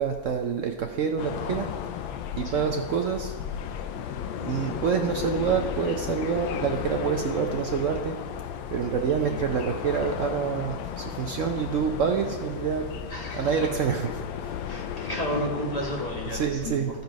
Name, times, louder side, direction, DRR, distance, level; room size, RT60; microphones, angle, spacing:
voice 1, 0.0-1.7 2.4-3.3 4.4-8.2 8.7-12.9 13.3-14.6 16.3-16.9, right 7 dB, 85° right, 4 dB, 0.6 m, -27 dB
sound 1, 1.2-16.5, left 9 dB, 90° left, 1.4 m, -34 dB
voice 2, 9.2-9.5 13.1-13.7 14.7-16.8, equal, 20° left, -2 dB, 1.4 m, -32 dB
14.0 x 5.3 x 5.2 m, 1.4 s
omnidirectional pair, 2.1 m